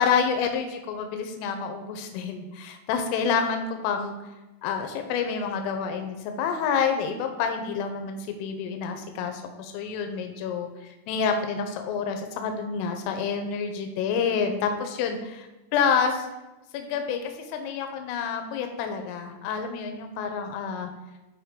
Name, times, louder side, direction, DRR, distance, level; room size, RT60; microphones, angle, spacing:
voice 1, 0.0-4.2 4.6-10.7 11.1-16.3 16.7-20.9, left 6 dB, 85° left, 5 dB, 3.3 m, -28 dB
12.0 x 4.7 x 3.7 m, 1.1 s
omnidirectional pair, 5.9 m